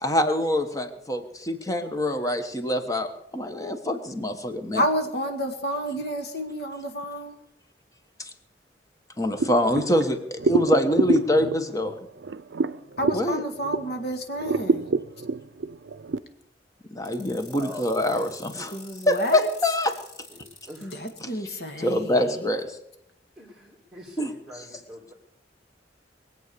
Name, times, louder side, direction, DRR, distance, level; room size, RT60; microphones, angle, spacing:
voice 1, 0.0-4.8 8.2-8.3 9.2-11.9 13.1-13.4 16.9-18.8 19.1-19.9 21.2-21.3 21.8-22.8 24.2-24.3, left 1 dB, 20° left, 7 dB, 1.3 m, -25 dB
voice 2, 4.7-7.4 13.0-14.9 18.7-19.5 20.8-22.5, equal, 60° left, 5 dB, 2.0 m, -30 dB
sound 1, 9.4-14.0 14.4-16.2, right 3 dB, 80° right, 0.6 m, -27 dB
sound 2, 17.0-21.2, left 2 dB, 40° left, 4.4 m, -47 dB
voice 3, 17.5-17.9 20.3-21.0 23.4-25.1, left 1 dB, ahead, -5 dB, 2.5 m, -43 dB
22.0 x 8.2 x 6.9 m, 0.77 s
head